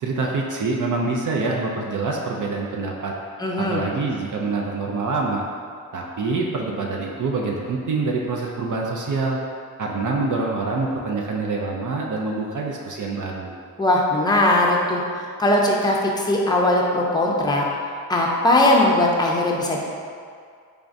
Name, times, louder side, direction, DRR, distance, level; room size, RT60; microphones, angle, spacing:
voice 1, 0.0-3.1 3.6-5.4 5.9-9.4 9.8-13.6, right 3 dB, 55° right, -1 dB, 0.5 m, -25 dB
voice 2, 3.4-3.8 13.8-17.7 18.1-19.8, left 1 dB, 10° left, -2 dB, 0.5 m, -19 dB
3.7 x 3.4 x 2.6 m, 2.1 s
cardioid pair, 70°, 36 cm